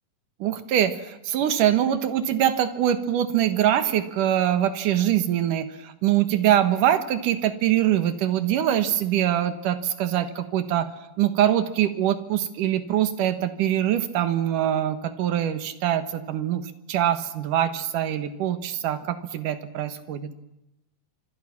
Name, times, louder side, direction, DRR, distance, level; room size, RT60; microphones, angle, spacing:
voice 1, 0.4-10.9 11.2-16.6 16.9-20.3, right 11 dB, 70° right, 10 dB, 2.9 m, -23 dB
26.0 x 26.0 x 6.0 m, 0.86 s
omnidirectional pair, 3.9 m